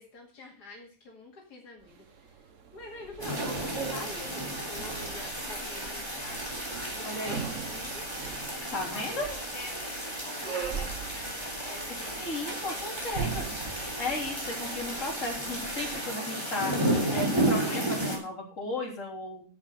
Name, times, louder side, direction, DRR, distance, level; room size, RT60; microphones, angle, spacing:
voice 1, 0.0-8.1 8.6-12.2, left 2 dB, 85° left, -1 dB, 2.9 m, -47 dB
sound 1, 1.8-16.0, right 6 dB, 55° right, 1.4 m, -41 dB
sound 2, 3.2-18.2, right 1 dB, 15° right, 3.5 m, -33 dB
voice 2, 7.0-7.6 8.7-9.3 12.2-13.5 14.0-19.4, left 2 dB, 50° left, -1 dB, 3.9 m, -35 dB
10.5 x 8.1 x 6.5 m, 0.41 s
omnidirectional pair, 1.7 m